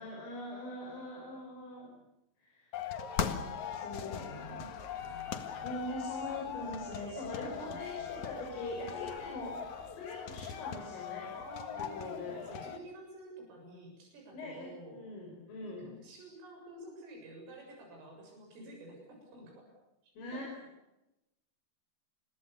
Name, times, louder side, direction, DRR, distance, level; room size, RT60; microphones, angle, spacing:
voice 1, 0.0-1.9 2.4-2.7 3.2-3.5 3.7-4.7 5.5-11.3 11.8-12.4 14.3-15.9 20.2-20.5, left 1 dB, 80° left, 0 dB, 8.3 m, -42 dB
sound 1, 2.7-12.8, left 8 dB, 60° left, 2.1 m, -40 dB
voice 2, 4.1-4.6 5.1-5.6 7.4-8.2 11.3-15.1 15.6-19.7 20.0-20.4, right 1 dB, 85° right, 1 dB, 9.8 m, -51 dB
sound 2, 4.2-10.1, right 1 dB, 15° right, 6.9 m, -57 dB
30.0 x 22.0 x 7.0 m, 0.92 s
omnidirectional pair, 5.7 m